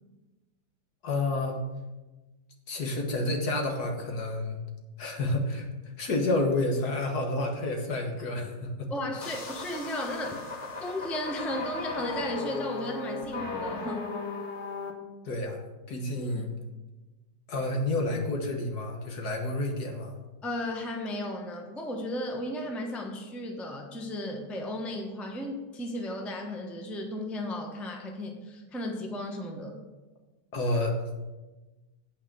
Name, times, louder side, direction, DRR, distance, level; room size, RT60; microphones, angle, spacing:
voice 1, 1.0-1.6 2.7-4.6 5.0-5.7 6.0-8.9 10.8-10.9 15.3-15.6 15.9-16.5 17.5-20.1 30.5-31.2, left 2 dB, 65° left, 2 dB, 1.8 m, -29 dB
voice 2, 8.9-10.4 10.8-14.0 16.2-16.4 20.4-29.8, left 1 dB, ahead, 2 dB, 0.7 m, -35 dB
sound 1, 9.2-14.9, left 3 dB, 45° left, 1.2 m, -36 dB
8.7 x 4.8 x 7.4 m, 1.2 s
omnidirectional pair, 1.9 m